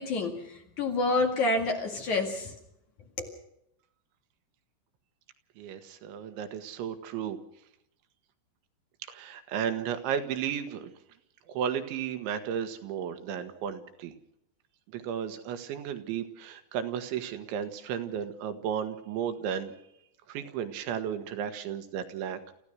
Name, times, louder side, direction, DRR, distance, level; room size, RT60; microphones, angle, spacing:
voice 1, 0.0-2.5 3.2-3.3, left 2 dB, 50° left, 3 dB, 2.9 m, -28 dB
voice 2, 5.6-7.4 9.0-10.9 11.5-14.1 14.9-19.7 20.3-22.5, right 8 dB, 90° right, 8 dB, 3.8 m, -34 dB
29.0 x 15.0 x 6.1 m, 0.79 s
omnidirectional pair, 5.2 m